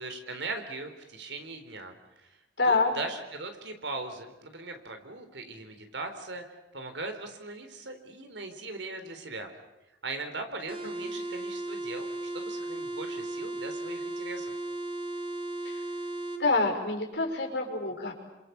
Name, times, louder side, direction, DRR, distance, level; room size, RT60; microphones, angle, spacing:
voice 1, 0.0-2.3 2.6-6.4 6.7-9.5 10.0-14.5, right 3 dB, 80° right, 6 dB, 4.0 m, -39 dB
voice 2, 2.6-2.9 15.6-15.8 16.4-18.1, left 3 dB, 75° left, 2 dB, 6.1 m, -26 dB
sound 1, 10.7-16.4, right 2 dB, 30° right, 2.3 m, -36 dB
29.0 x 26.5 x 7.1 m, 0.99 s
head